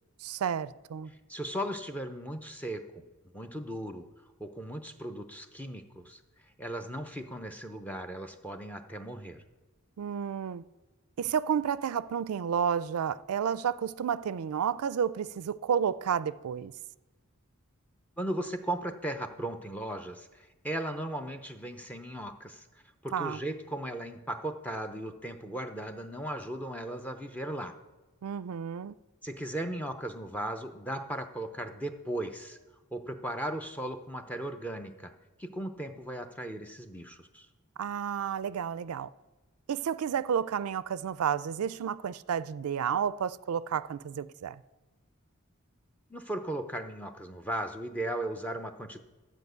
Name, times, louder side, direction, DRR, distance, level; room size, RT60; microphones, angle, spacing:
voice 1, 0.2-1.1 10.0-10.6 11.2-16.7 23.1-23.4 28.2-28.9 37.8-39.1 39.7-44.6, right 7 dB, 85° right, 0.4 m, -31 dB
voice 2, 1.1-3.0 3.3-4.1 4.4-9.4 18.2-27.8 29.2-32.6 32.9-35.1 35.4-37.5 46.1-49.0, right 1 dB, 5° left, 0.5 m, -37 dB
12.5 x 5.0 x 8.0 m
head